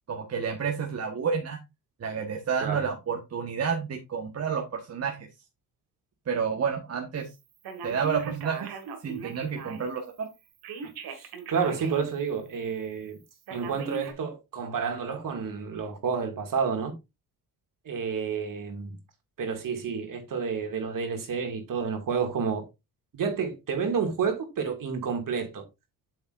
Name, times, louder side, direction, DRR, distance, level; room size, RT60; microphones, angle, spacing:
voice 1, 0.1-1.6 2.0-5.3 6.3-7.3 7.8-8.7 9.0-10.3, right 6 dB, 45° right, 1.3 m, -30 dB
Telephone, 7.6-10.0 10.6-12.1 12.5-12.6 13.5-14.1, right 4 dB, 80° right, 1.7 m, -39 dB
voice 2, 10.8-13.2 13.5-16.9 17.9-19.0 19.4-22.6 23.1-25.6, right 6 dB, 60° right, 2.2 m, -30 dB
7.8 x 6.9 x 2.5 m
cardioid pair, 85°, 36 cm